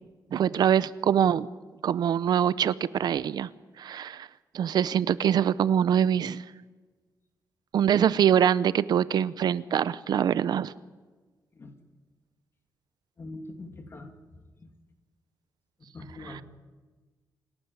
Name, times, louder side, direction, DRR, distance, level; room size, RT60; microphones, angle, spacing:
voice 1, 0.3-1.5 1.8-3.5 3.8-4.3 4.5-6.4 7.7-10.7, right 9 dB, 70° right, 17 dB, 0.7 m, -24 dB
voice 2, 13.2-14.1 14.6-14.7 15.9-16.4, left 2 dB, 35° left, 5 dB, 2.8 m, -42 dB
27.5 x 12.5 x 9.7 m, 1.3 s
wide cardioid pair, 145°, 7 cm